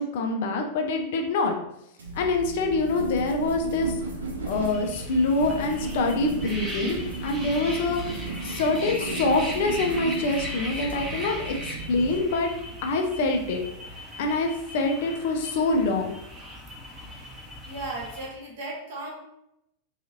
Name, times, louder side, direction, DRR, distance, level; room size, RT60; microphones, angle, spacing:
voice 1, 0.0-1.6 2.1-3.9 4.5-12.5 12.8-13.6 14.2-16.1, left 3 dB, 55° left, 3 dB, 0.4 m, -25 dB
sound 1, 2.0-12.2, right 3 dB, 70° right, 0.5 m, -35 dB
sound 2, 4.5-18.3, equal, 10° right, 0.8 m, -38 dB
voice 2, 17.6-19.1, right 2 dB, 50° right, -4 dB, 1.0 m, -36 dB
2.7 x 2.3 x 2.8 m, 0.82 s
figure-of-eight pair, 90°, 0 cm